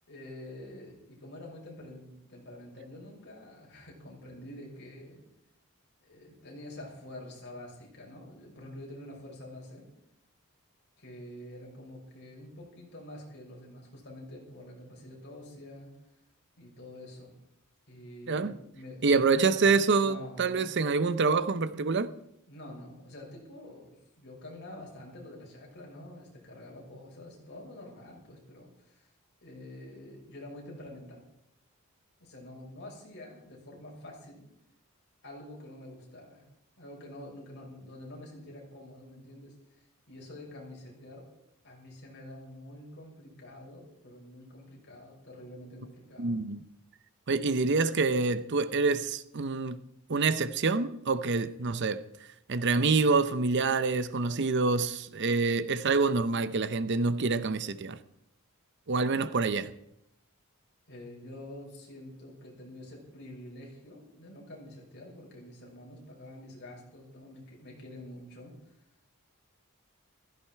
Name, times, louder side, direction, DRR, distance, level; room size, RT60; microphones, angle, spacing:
voice 1, 0.1-5.2 6.0-9.9 11.0-15.9 16.5-17.3 17.9-19.7 20.0-20.7 22.5-29.1 29.4-31.2 32.2-34.4 35.2-36.5 36.8-41.3 41.6-46.4 47.3-47.8 60.9-68.7, left 1 dB, 50° left, 6.1 m, -47 dB
voice 2, 18.3-18.6 19.0-22.1 46.2-46.6 47.3-49.8 50.1-52.0 52.5-58.0 58.9-59.7, right 4 dB, 50° right, 0.7 m, -26 dB
15.5 x 15.0 x 4.6 m
head